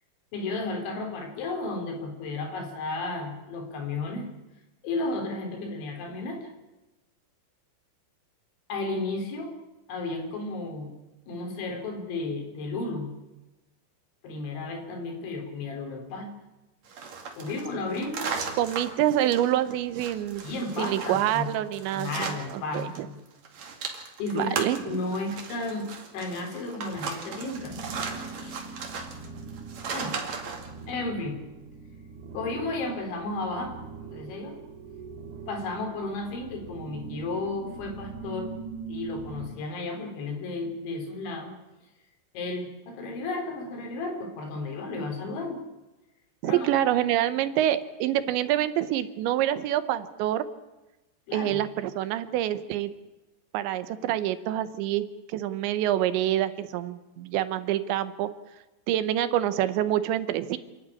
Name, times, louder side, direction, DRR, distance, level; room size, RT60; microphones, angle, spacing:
voice 1, 0.3-4.3 4.8-6.5 8.7-9.5 9.9-10.9 11.3-13.1 14.2-16.3 17.4-18.3 20.4-21.5 21.9-23.2 24.2-24.6 24.9-27.8 28.4-28.6 29.9-30.2 30.9-31.4 32.3-34.6 35.5-38.5 38.9-41.5 42.3-45.6 46.4-46.7 51.3-51.6, left 2 dB, 80° left, 3 dB, 6.0 m, -33 dB
sound 1, 16.9-23.0 23.3-30.7, right 5 dB, 45° right, 2.9 m, -37 dB
voice 2, 18.6-20.4 20.8-23.1 24.3-25.0 46.4-50.4 51.3-52.9 53.5-55.1 55.3-58.3 58.9-60.6, right 12 dB, 80° right, 12 dB, 3.3 m, -26 dB
sound 2, 27.5-39.5, right 4 dB, 65° right, 5.3 m, -42 dB
28.0 x 11.5 x 9.8 m, 1.1 s
omnidirectional pair, 5.2 m